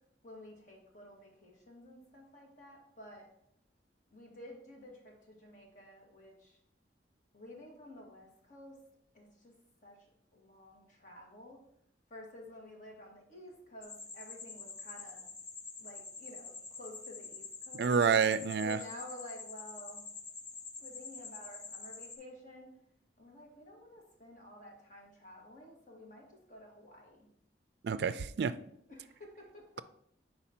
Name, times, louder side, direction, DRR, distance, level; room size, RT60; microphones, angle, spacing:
voice 1, 0.2-3.3 4.1-6.6 7.3-8.8 9.1-9.5 9.8-10.1 10.3-11.7 12.1-15.3 15.8-17.9 18.6-20.0 20.8-22.7 23.2-27.3 28.9-29.8, left 1 dB, 45° left, 1.5 m, -51 dB
sound 1, 13.8-22.2, left 4 dB, 75° left, 0.9 m, -47 dB
voice 2, 17.8-18.8 27.8-28.5, right 6 dB, 70° right, 0.3 m, -28 dB
4.8 x 4.1 x 5.7 m
head